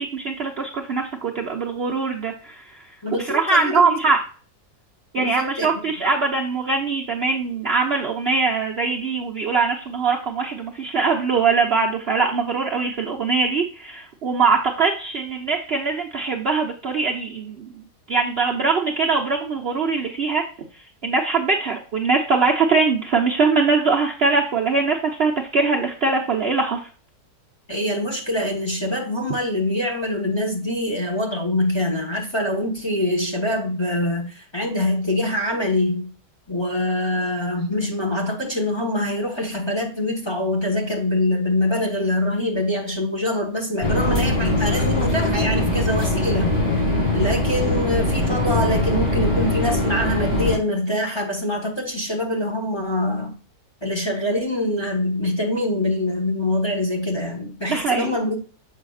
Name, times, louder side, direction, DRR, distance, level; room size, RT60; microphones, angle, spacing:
voice 1, 0.0-2.8 3.2-4.2 5.1-17.7 18.1-20.4 21.0-26.8 57.7-58.1, right 4 dB, 45° right, 0.9 m, -22 dB
voice 2, 3.0-3.9 5.2-5.7 27.7-36.1 36.5-46.6 47.1-53.3 53.8-58.4, left 1 dB, 15° left, 1.5 m, -24 dB
sound 1, 43.8-50.6, left 1 dB, 75° left, 2.8 m, -21 dB
7.3 x 5.6 x 2.5 m
omnidirectional pair, 1.8 m